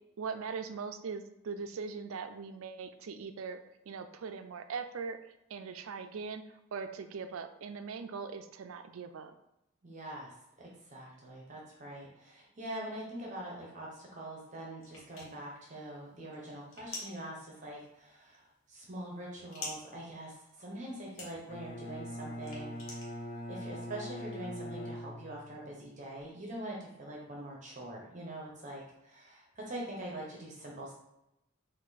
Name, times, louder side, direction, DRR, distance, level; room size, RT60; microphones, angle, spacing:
voice 1, 0.2-3.6 3.9-5.2 5.5-9.4, right 5 dB, 80° right, 9 dB, 0.4 m, -40 dB
voice 2, 9.8-10.3 10.6-23.1 23.5-30.9, right 1 dB, 35° right, -2 dB, 0.9 m, -44 dB
sound 1, 14.8-23.7, left 3 dB, 75° left, 1.3 m, -48 dB
Bowed string instrument, 21.5-25.7, equal, 45° left, 0.5 m, -42 dB
4.4 x 2.6 x 4.0 m, 0.87 s
head